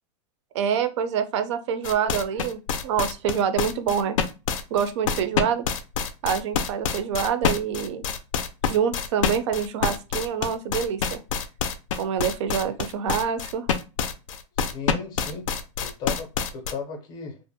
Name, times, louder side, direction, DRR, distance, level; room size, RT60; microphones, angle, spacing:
voice 1, 0.5-4.2 4.7-5.7 6.2-8.1 8.7-11.2 12.0-13.7, right 8 dB, 65° right, 0.4 m, -26 dB
sound 1, 1.8-16.7, left 7 dB, 90° left, 0.4 m, -26 dB
voice 2, 14.6-15.5 15.8-17.4, left 5 dB, 25° left, 0.5 m, -36 dB
2.5 x 2.1 x 2.6 m
supercardioid pair, 160°, 16 cm